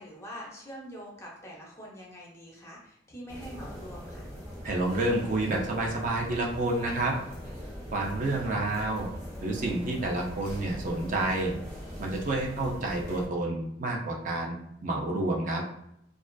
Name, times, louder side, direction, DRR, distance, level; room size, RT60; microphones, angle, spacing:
voice 1, 0.0-4.2, equal, 15° left, -3 dB, 0.5 m, -44 dB
sound 1, 3.3-13.3, equal, 20° right, 0.8 m, -41 dB
voice 2, 4.6-7.2 7.9-9.1 9.4-11.5 12.0-14.6 14.8-15.6, right 2 dB, 45° right, 0 dB, 0.4 m, -29 dB
2.4 x 2.3 x 2.2 m, 0.77 s
head